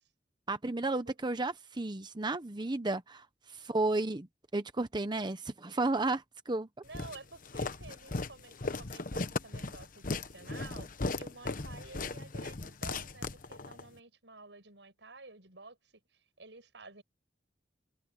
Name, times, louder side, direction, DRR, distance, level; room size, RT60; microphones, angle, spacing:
voice 1, 0.5-4.3 4.5-6.7, right 2 dB, 25° right, 0.8 m, -33 dB
voice 2, 6.8-15.8 16.4-17.0, right 3 dB, 85° right, 6.4 m, -51 dB
Walk footsteps, 6.9-13.9, left 3 dB, 50° left, 1.1 m, -37 dB
head